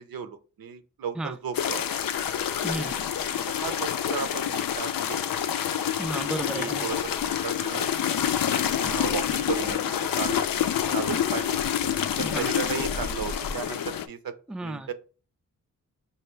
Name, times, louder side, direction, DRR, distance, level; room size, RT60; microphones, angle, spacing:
voice 1, 0.0-1.8 2.7-3.0 3.6-5.2 6.5-7.9 8.8-10.4 10.9-11.6 12.2-13.8 14.1-14.3 14.6-14.9, right 7 dB, 85° right, 0.6 m, -35 dB
sound 1, 1.5-14.1, left 9 dB, 80° left, 0.5 m, -27 dB
voice 2, 2.6-2.9 6.0-6.9 12.2-12.5 14.5-14.9, right 2 dB, 5° right, 0.3 m, -33 dB
5.5 x 2.3 x 3.1 m
cardioid pair, 65°, 34 cm